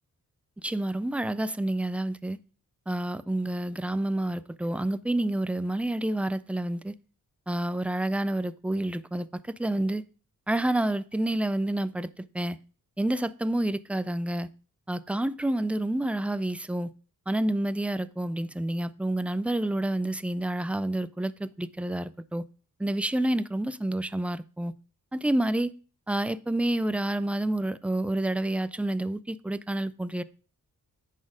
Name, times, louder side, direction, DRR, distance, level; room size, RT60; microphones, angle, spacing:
voice 1, 0.6-2.4 2.9-7.0 7.5-10.0 10.5-12.6 13.0-14.5 14.9-16.9 17.3-22.4 22.8-24.7 25.1-25.7 26.1-30.2, right 1 dB, 5° right, 0.3 m, -29 dB
10.0 x 4.3 x 4.8 m
wide cardioid pair, 100°, 35 cm